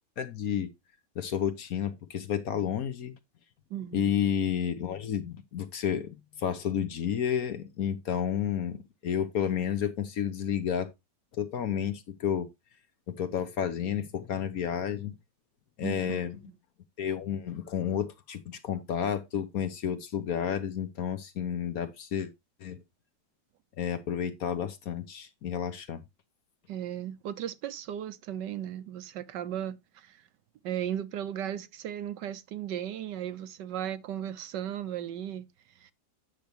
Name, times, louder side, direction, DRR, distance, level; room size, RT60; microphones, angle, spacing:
voice 1, 0.2-0.7 1.2-3.1 3.9-10.9 11.4-12.5 13.1-15.1 15.8-16.4 17.0-22.3 22.6-22.8 23.8-26.0, left 9 dB, 60° left, 1.2 m, -31 dB
voice 2, 3.7-4.0 15.8-16.5 26.7-30.2 30.6-35.5 35.8-35.9, right 10 dB, 75° right, 1.4 m, -36 dB
9.3 x 6.7 x 2.9 m
omnidirectional pair, 1.9 m